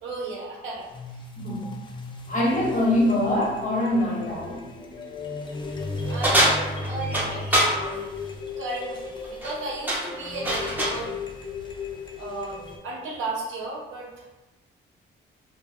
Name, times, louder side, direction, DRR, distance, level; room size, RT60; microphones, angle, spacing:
voice 1, 0.0-1.2 6.0-8.1 8.6-11.1 12.2-12.6 12.8-14.1, right 2 dB, 80° right, -4 dB, 0.8 m, -34 dB
sound 1, 0.8-12.8, left 3 dB, 25° left, 0.4 m, -35 dB
voice 2, 1.4-1.7 2.3-4.6, left 1 dB, 40° left, -4 dB, 0.9 m, -24 dB
sound 2, 6.2-7.8 9.2-9.5 9.9-11.0, equal, 10° right, 0.6 m, -23 dB
2.6 x 2.1 x 2.3 m, 1.1 s
cardioid pair, 90°, 20 cm